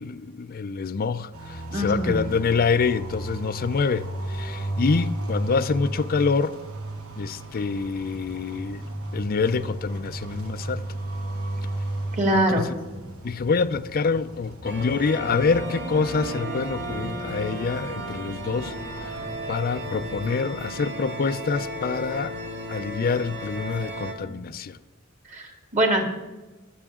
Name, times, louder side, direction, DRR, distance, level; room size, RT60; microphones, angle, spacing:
voice 1, 0.0-6.5 7.2-8.8 9.1-10.8 12.3-12.7 13.2-19.2 19.5-22.4 22.7-24.8, left 5 dB, 45° left, 0.4 m, -26 dB
sound 1, 1.3-20.2, right 1 dB, 85° right, 2.1 m, -35 dB
voice 2, 1.7-2.3 12.2-12.6 25.3-26.1, right 1 dB, 35° right, 2.6 m, -23 dB
sound 2, 14.6-24.1, right 1 dB, 55° right, 2.3 m, -34 dB
22.5 x 7.9 x 3.7 m
head